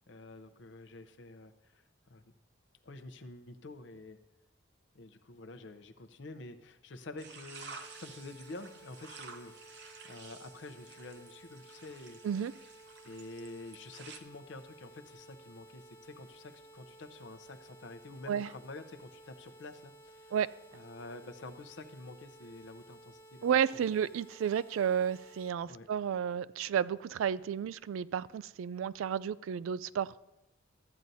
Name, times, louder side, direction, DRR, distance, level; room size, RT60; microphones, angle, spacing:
voice 1, 0.1-1.8 2.1-2.2 2.8-4.2 4.9-9.8 10.1-12.2 13.0-20.3 20.7-23.5 23.7-24.0 25.7-25.9, left 2 dB, 65° left, 0.6 m, -48 dB
sound 1, 7.2-14.2, right 5 dB, 55° right, 0.8 m, -52 dB
sound 2, 7.8-25.5, right 1 dB, 10° left, 0.6 m, -56 dB
voice 2, 23.4-30.1, right 8 dB, 90° right, 0.3 m, -32 dB
13.5 x 9.0 x 2.7 m
head